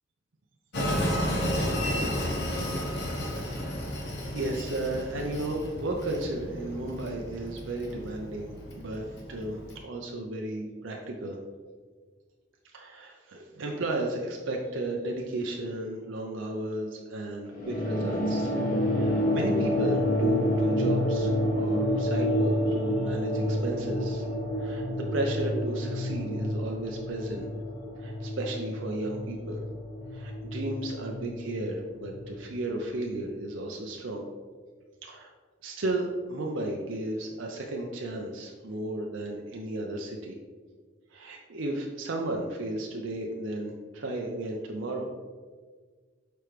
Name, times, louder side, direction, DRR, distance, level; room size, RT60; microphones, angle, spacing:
Train, 0.7-9.8, equal, 65° left, 1.1 m, -32 dB
voice 1, 4.3-11.4 12.7-18.5 18.8-24.3 24.6-27.5 28.0-29.6 30.1-34.3 35.0-35.3 35.6-40.4 41.1-45.1, right 1 dB, 75° right, 1 dB, 0.6 m, -34 dB
sound 1, 17.5-32.4, equal, 45° left, 1.1 m, -28 dB
6.8 x 4.4 x 3.2 m, 1.5 s
head